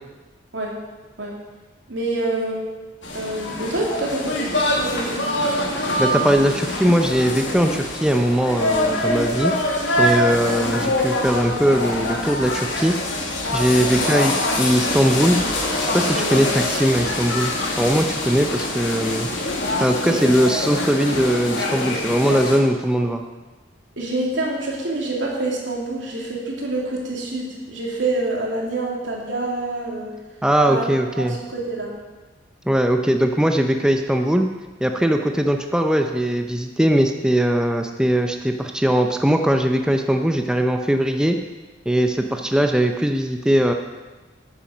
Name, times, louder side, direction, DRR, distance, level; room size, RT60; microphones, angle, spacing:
voice 1, 1.9-2.6 3.1-4.5 4.7-5.3 13.7-14.1 16.1-16.4 20.1-20.3 24.0-30.1 30.6-30.8 31.1-31.9 42.2-42.3, right 2 dB, 85° right, -3 dB, 2.8 m, -26 dB
sound 1, 3.0-22.6, left 1 dB, 85° left, 2.1 m, -24 dB
voice 2, 6.0-9.5 10.0-13.0 13.5-15.4 15.8-17.5 17.8-19.3 19.8-23.2 30.4-31.4 32.7-34.5 34.8-41.4 41.9-43.7, equal, 5° right, 4 dB, 0.5 m, -20 dB
9.2 x 8.7 x 6.1 m, 1.2 s
head